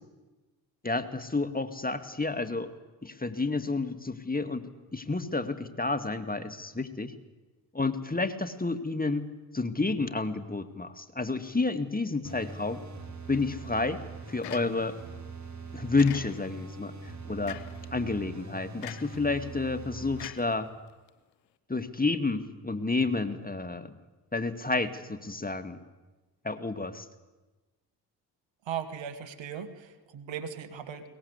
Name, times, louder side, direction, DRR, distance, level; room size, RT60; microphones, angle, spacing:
voice 1, 0.8-2.7 3.0-4.6 4.9-7.1 7.7-9.3 9.5-12.8 13.3-14.0 14.3-15.0 15.7-17.6 17.9-20.7 21.7-24.0 24.3-25.8 26.4-27.1, left 3 dB, 15° left, 9 dB, 2.2 m, -30 dB
sound 1, 12.2-20.3, right 4 dB, 35° right, 4.0 m, -42 dB
sound 2, 14.4-15.1 16.0-16.6 17.5-17.9 18.8-19.2 20.2-21.1, left 12 dB, 90° left, 1.0 m, -43 dB
voice 2, 28.7-31.1, right 8 dB, 65° right, 8 dB, 2.0 m, -38 dB
22.0 x 20.0 x 8.3 m, 1.2 s
hypercardioid pair, 40°, 49 cm